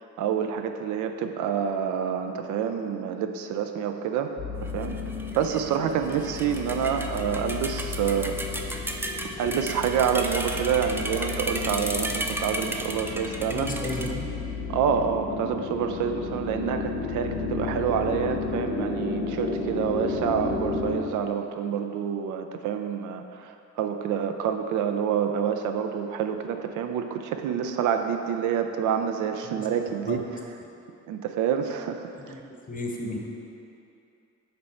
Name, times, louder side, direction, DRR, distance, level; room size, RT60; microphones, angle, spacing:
voice 1, 0.0-4.3 4.7-5.0 5.3-8.4 9.4-13.7 14.7-30.2 31.1-32.0, right 8 dB, 85° right, 6 dB, 0.5 m, -27 dB
sound 1, 4.4-20.9, left 4 dB, 90° left, 1.5 m, -33 dB
sound 2, 4.6-14.1, right 1 dB, 10° right, 0.3 m, -35 dB
voice 2, 13.5-14.3 29.5-29.7 30.1-30.2 32.2-32.4 32.7-33.2, left 2 dB, 30° left, 0 dB, 0.8 m, -33 dB
6.9 x 3.2 x 4.2 m, 2.7 s
cardioid pair, 90°, 30 cm